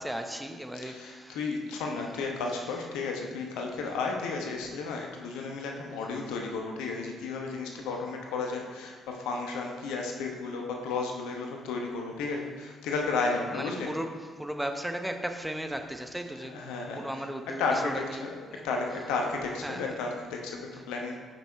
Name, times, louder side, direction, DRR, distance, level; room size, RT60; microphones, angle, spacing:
voice 1, 0.0-1.4 1.9-2.3 13.5-16.5 16.9-18.2 18.5-18.6 19.6-19.9, equal, 5° right, 5 dB, 0.8 m, -36 dB
voice 2, 0.9-13.9 16.3-17.2 17.6-21.2, left 4 dB, 70° left, 1 dB, 1.0 m, -33 dB
7.3 x 5.7 x 4.5 m, 1.5 s
figure-of-eight pair, 45°, 0 cm